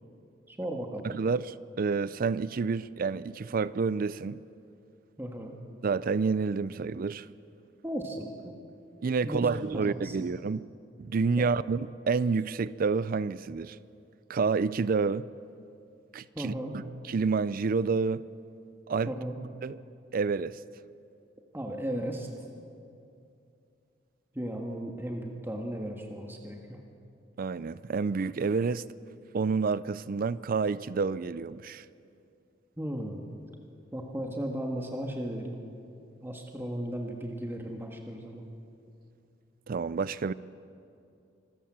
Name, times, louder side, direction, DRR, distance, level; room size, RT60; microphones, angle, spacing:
voice 1, 0.5-1.0 5.2-5.6 7.8-8.5 9.2-9.5 9.7-10.2 11.4-11.5 16.3-16.7 19.1-19.4 21.5-22.3 24.3-26.8 32.8-33.2 33.9-35.6 36.2-38.4, right 1 dB, 10° right, 1.5 m, -35 dB
voice 2, 1.0-4.4 5.8-7.3 9.0-10.6 11.0-13.8 14.3-15.3 16.1-18.2 18.9-19.1 19.6-19.8 20.1-20.6 27.4-28.8 29.3-31.9 39.7-40.3, right 4 dB, 50° right, 0.4 m, -29 dB
25.5 x 14.0 x 7.4 m
head